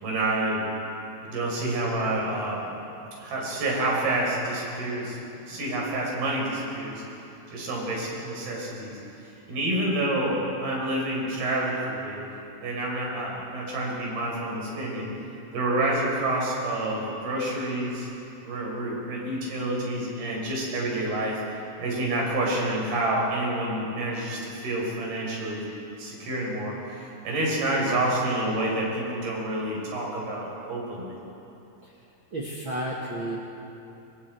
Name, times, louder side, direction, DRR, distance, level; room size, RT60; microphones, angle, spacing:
voice 1, 0.0-0.7 1.2-2.7 3.2-5.2 5.5-7.0 7.5-9.0 9.5-12.2 12.6-15.1 15.5-18.1 18.4-21.4 21.8-25.6 26.0-31.2, right 1 dB, 75° right, -3 dB, 6.2 m, -28 dB
voice 2, 32.3-33.4, right 1 dB, 50° right, -3 dB, 1.6 m, -31 dB
25.0 x 23.0 x 4.4 m, 2.9 s
omnidirectional pair, 4.4 m